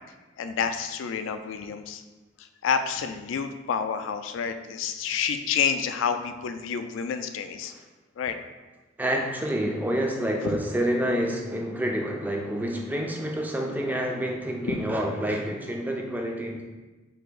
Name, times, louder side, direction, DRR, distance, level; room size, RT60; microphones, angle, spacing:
voice 1, 0.4-2.0 2.6-7.7 8.2-8.4 14.6-14.8, left 6 dB, 80° left, 9 dB, 0.3 m, -29 dB
voice 2, 9.0-16.6, equal, 10° right, 1 dB, 0.3 m, -28 dB
3.3 x 2.8 x 3.8 m, 1.2 s
head